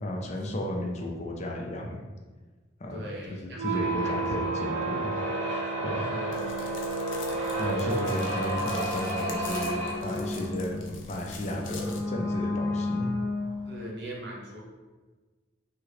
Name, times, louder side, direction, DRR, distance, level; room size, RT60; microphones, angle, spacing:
voice 1, 0.0-2.0 2.8-3.0 3.3-5.1 5.8-6.0 7.6-13.2, left 1 dB, 35° left, 0 dB, 0.4 m, -33 dB
voice 2, 2.9-4.2 6.1-6.8 7.5-8.2 13.6-14.6, right 1 dB, 60° right, -3 dB, 0.8 m, -40 dB
sound 1, 3.5-13.8, right 1 dB, 85° right, 1.3 m, -31 dB
sound 2, 6.3-12.0, left 5 dB, 90° left, 0.5 m, -45 dB
3.1 x 2.8 x 2.8 m, 1.3 s
head